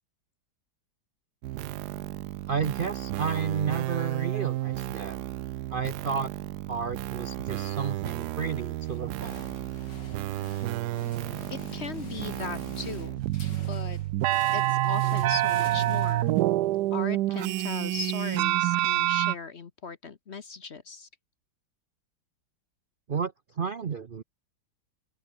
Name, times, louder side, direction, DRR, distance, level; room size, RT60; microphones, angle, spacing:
sound 1, 1.4-19.4, right 15 dB, 75° right, 1.1 m, -29 dB
voice 1, 2.5-5.2 5.7-6.3 6.7-9.4 23.1-24.2, right 6 dB, 50° right, 0.6 m, -32 dB
sound 2, 8.8-16.8, left 3 dB, 70° left, 4.9 m, -45 dB
voice 2, 11.5-13.2 13.7-14.0 14.5-16.4 16.9-21.1, left 5 dB, 45° left, 1.1 m, -38 dB
open air
omnidirectional pair, 2.0 m